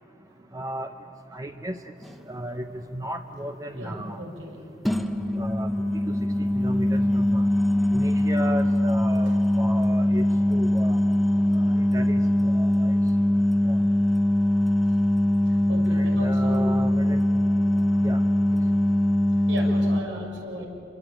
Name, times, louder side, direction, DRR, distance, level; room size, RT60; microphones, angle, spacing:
voice 1, 0.5-0.9 1.3-1.8 2.3-4.2 5.4-5.7 6.6-7.4 7.9-11.0 11.5-12.2 12.5-12.9 13.7-13.9 15.9-17.2 18.0-18.2, right 1 dB, 20° right, 6 dB, 0.7 m, -34 dB
sound 1, 2.0-2.2 4.8-20.0, left 1 dB, ahead, 1.1 m, -22 dB
voice 2, 3.7-4.6 15.5-16.7 19.5-20.7, equal, 90° right, 0 dB, 6.3 m, -36 dB
27.5 x 22.5 x 8.9 m, 2.8 s
head